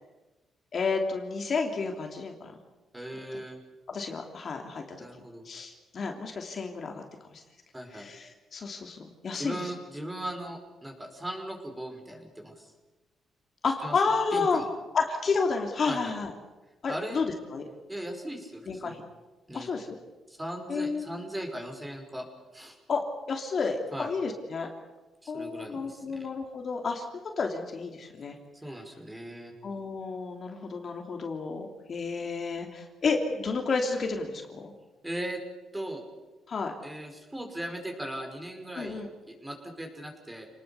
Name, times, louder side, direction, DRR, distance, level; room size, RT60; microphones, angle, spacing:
voice 1, 0.7-2.5 3.9-4.8 5.4-7.0 7.3-7.4 7.9-9.7 13.6-14.6 14.9-16.3 16.8-17.6 18.7-19.0 19.5-20.0 20.7-21.1 22.9-24.7 25.3-27.0 27.4-28.3 29.6-34.7 36.5-36.7 38.7-39.1, left 4 dB, 45° left, 3 dB, 3.0 m, -31 dB
voice 2, 2.9-3.6 5.0-5.4 7.7-8.1 9.3-12.7 13.8-14.7 15.9-16.1 16.9-17.2 17.9-19.0 19.5-19.7 20.3-22.3 22.5-22.8 23.9-24.1 25.2-26.3 28.6-29.5 35.0-35.4 35.7-36.0 36.8-40.5, right 1 dB, 10° right, 3 dB, 5.1 m, -38 dB
28.0 x 20.0 x 7.0 m, 1.1 s
cardioid pair, 105°, 0 cm